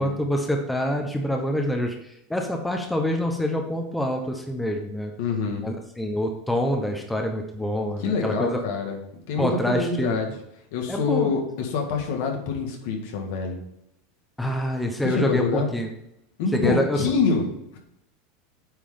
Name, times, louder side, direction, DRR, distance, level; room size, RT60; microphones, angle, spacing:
voice 1, 0.0-1.9 2.3-5.1 5.6-8.6 9.4-10.3 10.9-11.3 14.4-15.9 16.5-17.1, equal, 5° left, 3 dB, 1.0 m, -26 dB
voice 2, 5.2-5.6 8.0-9.0 9.3-10.3 10.7-13.6 15.0-15.7 16.4-17.8, left 4 dB, 70° left, 2 dB, 1.9 m, -26 dB
8.8 x 3.7 x 5.1 m, 0.79 s
supercardioid pair, 120°, 0 cm